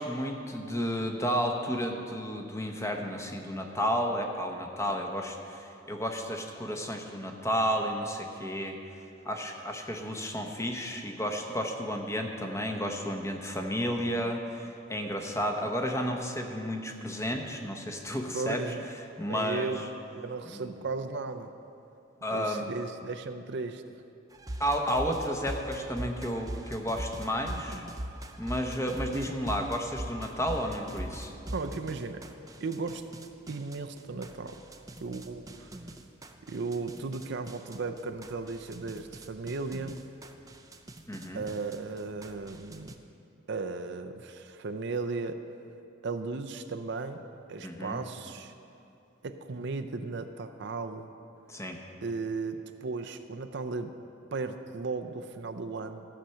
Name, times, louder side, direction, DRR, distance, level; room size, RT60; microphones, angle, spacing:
voice 1, 0.0-8.8 9.2-18.6 19.2-19.7 20.5-20.7 22.2-22.7 24.6-27.8 28.4-31.3 41.1-41.5 47.6-48.0 51.5-51.8, equal, 15° left, 3 dB, 0.9 m, -32 dB
voice 2, 18.3-18.8 19.3-19.8 20.1-21.5 22.3-24.0 29.1-29.3 31.5-32.2 32.6-33.1 33.5-34.6 35.0-35.7 36.4-40.0 41.3-42.9 43.5-45.4 46.0-48.5 49.2-51.1 52.0-53.9 54.3-56.1, right 3 dB, 60° right, 7 dB, 0.5 m, -36 dB
sound 1, 24.3-42.9, right 1 dB, 20° right, 0.6 m, -42 dB
14.5 x 7.6 x 5.6 m, 2.7 s
head